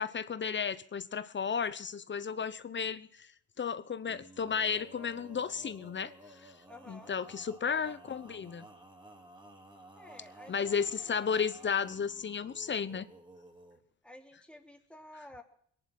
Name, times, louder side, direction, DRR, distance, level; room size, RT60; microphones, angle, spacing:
voice 1, 0.0-3.3 3.6-6.1 6.4-6.5 6.9-8.6 10.5-13.1, left 6 dB, 40° left, 0.9 m, -33 dB
Male singing, 4.0-13.8, right 1 dB, 15° right, 3.5 m, -54 dB
voice 2, 6.6-7.1 9.9-10.7 14.0-15.4, left 1 dB, 5° left, 3.4 m, -52 dB
21.5 x 11.0 x 6.1 m
cardioid pair, 90°, 30 cm